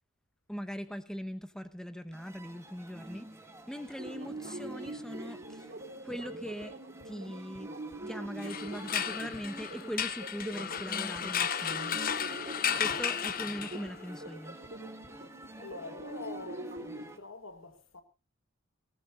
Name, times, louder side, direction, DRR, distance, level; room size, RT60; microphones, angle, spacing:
voice 1, 0.5-3.3 3.7-5.7 6.0-6.7 7.0-7.7 8.1-12.0 12.8-14.6, equal, 5° left, 1.2 m, -40 dB
sound 1, 2.1-17.2, right 1 dB, 15° right, 1.7 m, -49 dB
sound 2, 4.0-17.1, right 2 dB, 50° right, 3.0 m, -45 dB
sound 3, 8.4-14.1, left 8 dB, 45° left, 0.9 m, -34 dB
voice 2, 15.6-18.0, left 3 dB, 80° left, 2.4 m, -45 dB
20.0 x 18.5 x 2.6 m
head